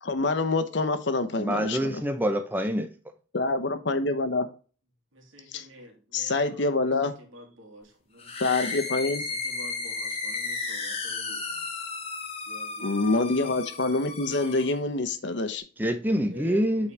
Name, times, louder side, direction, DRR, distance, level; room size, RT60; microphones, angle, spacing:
voice 1, 0.0-2.0 3.3-4.5 5.5-5.7 6.1-7.1 8.4-9.2 12.8-15.6, left 3 dB, 60° left, 0.9 m, -26 dB
voice 2, 1.4-2.9 15.8-16.9, equal, 10° right, 0.7 m, -26 dB
voice 3, 5.1-6.6 7.3-8.3 9.1-9.2 9.4-11.7 12.5-13.0 16.3-16.9, equal, 85° right, 2.5 m, -48 dB
sound 1, 8.2-14.8, left 4 dB, 30° left, 1.1 m, -34 dB
8.2 x 4.2 x 3.3 m
head